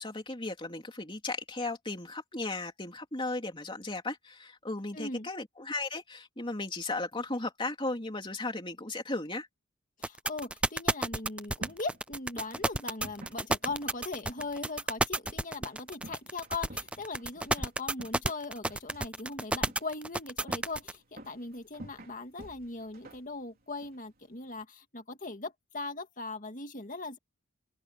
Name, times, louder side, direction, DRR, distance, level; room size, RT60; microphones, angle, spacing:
voice 1, 0.0-9.5, left 2 dB, 25° left, 3.4 m, -36 dB
voice 2, 4.9-5.3 10.0-27.2, left 3 dB, 40° left, 2.1 m, -39 dB
sound 1, 10.0-20.9, right 1 dB, 5° right, 0.5 m, -30 dB
sound 2, 11.2-24.6, right 1 dB, 45° right, 4.2 m, -52 dB
open air
head